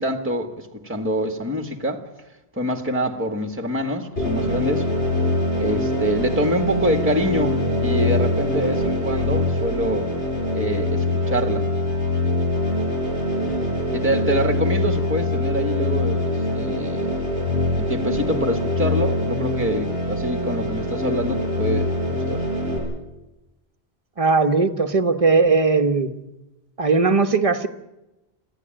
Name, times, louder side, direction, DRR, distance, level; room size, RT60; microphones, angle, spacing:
voice 1, 0.0-2.0 2.5-4.9 5.6-10.1 10.5-11.7 13.9-17.2 17.8-22.4, equal, 10° right, 1.6 m, -25 dB
sound 1, 4.2-22.8, left 1 dB, 70° left, 7.0 m, -23 dB
voice 2, 24.2-26.1 26.8-27.7, right 4 dB, 35° right, 1.2 m, -18 dB
26.0 x 15.0 x 8.9 m
omnidirectional pair, 1.1 m